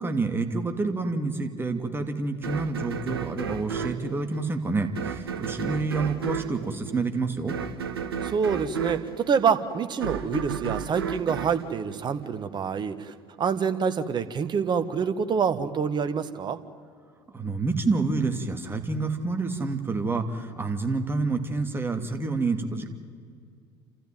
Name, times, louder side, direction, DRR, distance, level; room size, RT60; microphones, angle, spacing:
voice 1, 0.0-7.6 17.3-22.9, right 3 dB, 20° right, 5 dB, 2.7 m, -28 dB
sound 1, 2.4-12.6, right 7 dB, 85° right, 1.2 m, -33 dB
voice 2, 8.2-16.6, right 6 dB, 35° right, 10 dB, 1.6 m, -26 dB
29.5 x 13.5 x 9.3 m, 2.2 s
hypercardioid pair, 65°, 12 cm